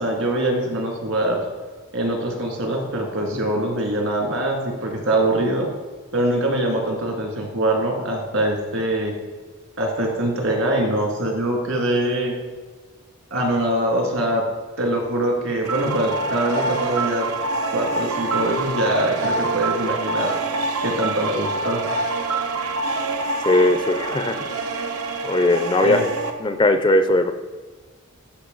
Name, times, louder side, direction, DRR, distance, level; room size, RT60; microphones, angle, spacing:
voice 1, 0.0-1.4 1.9-5.7 6.1-9.1 9.8-12.4 13.3-14.4 14.8-17.3 17.7-20.3 20.8-21.9 25.8-26.0, right 1 dB, 70° right, 0 dB, 2.2 m, -23 dB
sound 1, 15.6-26.3, right 3 dB, 85° right, 0.9 m, -26 dB
voice 2, 23.4-24.4 25.2-26.0 26.4-27.3, left 2 dB, 20° left, 9 dB, 0.4 m, -18 dB
13.0 x 5.3 x 3.9 m, 1.4 s
head